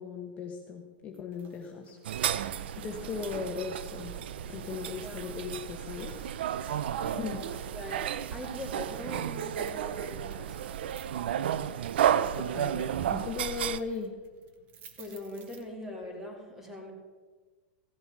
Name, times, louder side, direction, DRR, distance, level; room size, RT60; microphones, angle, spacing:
voice 1, 0.0-2.0 2.8-4.1 4.4-6.2 7.2-7.4 12.3-14.1, left 6 dB, 25° left, 1 dB, 1.1 m, -38 dB
sound 1, 1.1-16.1, right 6 dB, 30° right, 1.2 m, -58 dB
sound 2, 2.0-13.8, right 10 dB, 75° right, 0.6 m, -32 dB
voice 2, 3.0-3.7 4.9-5.2 7.0-10.7 15.0-16.9, left 1 dB, 5° right, 1 dB, 2.5 m, -42 dB
15.0 x 7.8 x 6.0 m, 1.4 s
supercardioid pair, 150°, 6 cm